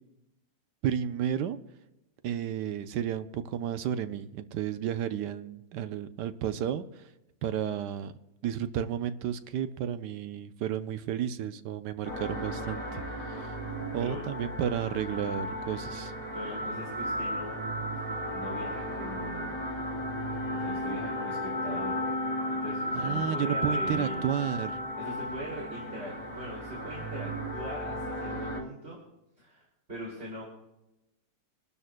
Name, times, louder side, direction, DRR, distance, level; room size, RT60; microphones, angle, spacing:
voice 1, 0.8-1.6 2.2-7.0 7.4-8.1 8.4-13.0 13.9-16.1 22.9-24.8, right 9 dB, 75° right, 11 dB, 1.2 m, -32 dB
sound 1, 12.0-28.6, equal, 25° left, 3.4 m, -34 dB
voice 2, 16.3-17.6 18.0-19.5 20.5-22.0 22.5-24.2 25.0-29.0 29.4-30.4, equal, 35° right, -3 dB, 3.1 m, -41 dB
28.0 x 12.5 x 2.2 m, 0.92 s
omnidirectional pair, 1.9 m